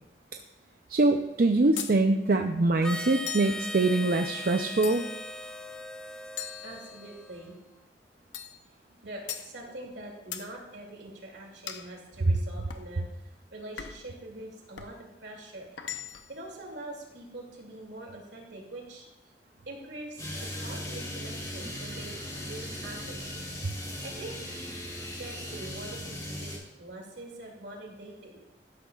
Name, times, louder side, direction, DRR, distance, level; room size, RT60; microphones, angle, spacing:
voice 1, 0.9-5.0, right 2 dB, 55° right, 5 dB, 0.5 m, -24 dB
sound 1, 1.8-2.0 3.3-3.6 4.8-5.3 6.4-7.3 8.3-8.6 9.3-9.5 10.3-10.5 11.7-11.9 12.7-12.9 13.8-14.1 14.8-15.0 15.8-16.4, left 9 dB, 85° left, 0.7 m, -39 dB
Harmonica, 2.8-7.5, left 1 dB, 5° left, 0.4 m, -39 dB
voice 2, 6.6-7.5 9.0-13.0 13.5-15.7 16.3-19.1 19.7-23.3 24.0-24.3 25.2-26.5 26.8-28.4, right 2 dB, 80° right, 0 dB, 2.6 m, -44 dB
sound 2, 20.2-26.6, left 1 dB, 20° left, 3.4 m, -38 dB
12.0 x 12.0 x 2.4 m, 0.92 s
head